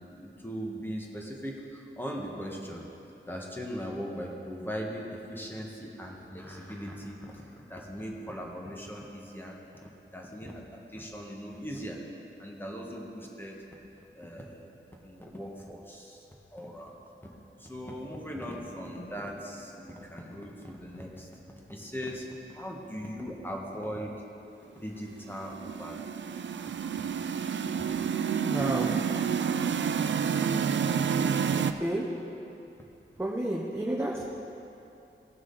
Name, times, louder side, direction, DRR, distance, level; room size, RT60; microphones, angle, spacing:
voice 1, 0.0-2.9 3.3-9.6 10.1-12.0 12.4-13.6 14.1-14.7 15.0-16.2 16.5-16.9 17.6-21.3 21.7-24.1 24.7-26.5 27.7-27.8, equal, 10° left, -1 dB, 1.4 m, -39 dB
sound 1, 25.3-31.7, right 7 dB, 65° right, 0.4 m, -29 dB
voice 2, 28.4-28.9 31.7-32.0 33.2-34.3, right 1 dB, 10° right, -3 dB, 0.8 m, -31 dB
16.5 x 6.2 x 3.9 m, 2.9 s
wide cardioid pair, 100°, 21 cm